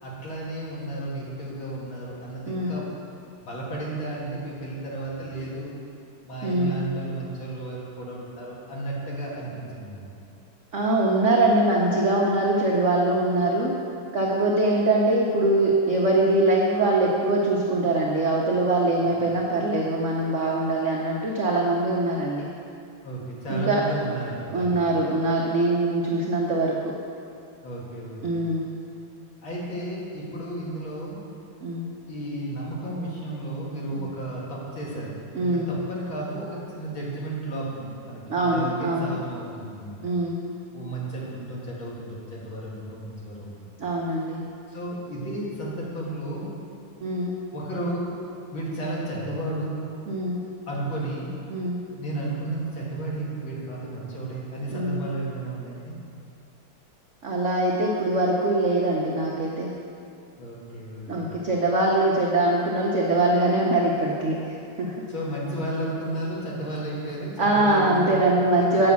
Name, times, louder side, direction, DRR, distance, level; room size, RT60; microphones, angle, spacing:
voice 1, 0.0-2.9 3.4-5.7 6.2-10.1 19.0-19.3 23.0-24.8 27.6-28.5 29.4-31.2 32.1-40.0 40.7-43.7 44.7-46.5 47.5-48.1 48.5-49.7 50.7-51.3 52.0-56.0 60.4-61.3 65.1-68.3 68.6-68.9, right 1 dB, 75° left, -5 dB, 2.8 m, -33 dB
voice 2, 2.5-2.8 6.4-6.8 10.7-13.8 14.1-22.5 23.5-23.8 24.5-26.9 28.2-28.7 31.6-31.9 33.9-34.1 35.3-35.7 38.3-39.1 40.0-40.4 43.8-44.4 47.0-47.4 50.1-50.4 51.5-51.8 54.7-55.0 57.2-59.7 61.1-64.9 67.4-68.9, right 2 dB, 55° right, -3 dB, 0.9 m, -23 dB
8.3 x 5.9 x 7.1 m, 2.5 s
omnidirectional pair, 2.2 m